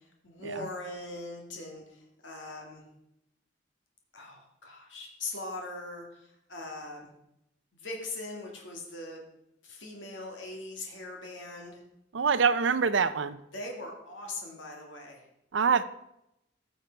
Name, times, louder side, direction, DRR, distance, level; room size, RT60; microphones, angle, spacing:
voice 1, 0.0-2.8 4.1-7.1 7.7-9.3 9.6-11.8 13.5-15.2, left 2 dB, 85° left, 0 dB, 2.3 m, -41 dB
voice 2, 12.1-13.4 15.5-15.8, right 5 dB, 80° right, 14 dB, 0.6 m, -25 dB
15.0 x 6.7 x 4.6 m, 0.84 s
head